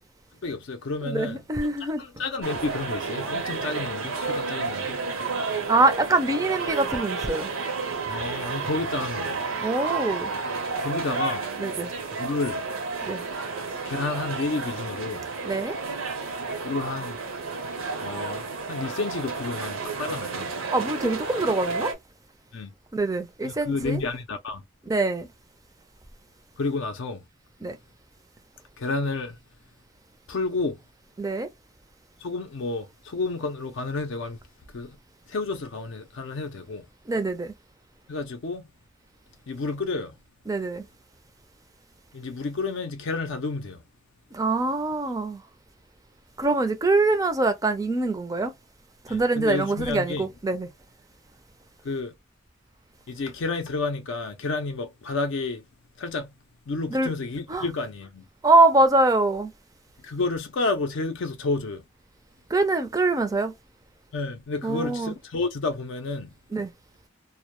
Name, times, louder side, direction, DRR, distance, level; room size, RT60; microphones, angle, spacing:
voice 1, 0.4-1.4 1.8-5.0 8.1-9.4 10.8-11.5 12.2-12.6 13.9-15.2 16.6-17.2 18.0-20.5 22.5-22.7 23.4-24.6 26.6-27.2 28.8-29.4 30.3-30.8 32.2-34.4 34.7-35.0 35.3-36.9 38.1-38.7 39.5-40.1 42.1-43.8 49.1-50.3 51.8-52.1 53.1-55.7 56.0-56.3 56.7-58.3 60.0-61.8 64.1-66.3, left 3 dB, 65° left, 0.4 m, -30 dB
voice 2, 1.0-2.0 5.7-7.5 9.6-10.3 11.6-11.9 13.0-13.3 15.4-15.8 20.7-21.9 22.9-24.0 24.9-25.3 27.6-27.8 31.2-31.5 37.1-37.5 40.5-40.8 44.3-45.4 46.4-48.5 49.0-50.7 56.9-57.1 57.5-57.6 58.4-59.5 62.5-63.5 64.6-65.1 66.5-66.7, right 2 dB, 15° right, 0.4 m, -24 dB
sound 1, 2.4-21.9, right 4 dB, 85° right, 0.7 m, -31 dB
2.1 x 2.1 x 2.9 m
head